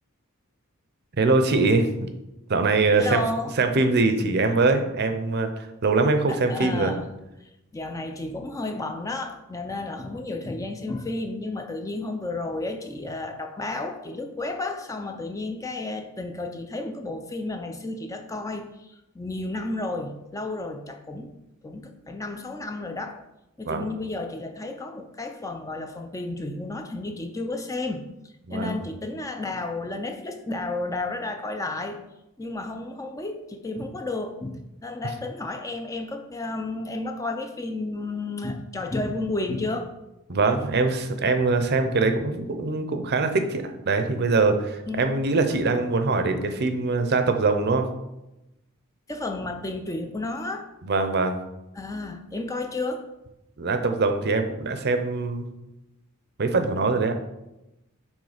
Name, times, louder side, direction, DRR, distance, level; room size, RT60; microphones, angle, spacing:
voice 1, 1.2-1.9 2.5-3.2 3.6-6.9 23.7-23.9 28.5-28.8 40.3-47.9 50.8-51.4 53.6-55.5 56.4-57.2, right 3 dB, 50° right, 7 dB, 0.6 m, -23 dB
voice 2, 3.0-3.5 6.3-7.1 7.4-21.3 21.6-23.2 23.6-28.0 28.5-32.0 32.4-39.9 44.9-45.1 49.1-50.7 51.8-53.0, left 2 dB, 15° left, 5 dB, 0.4 m, -32 dB
6.3 x 3.7 x 4.9 m, 0.93 s
head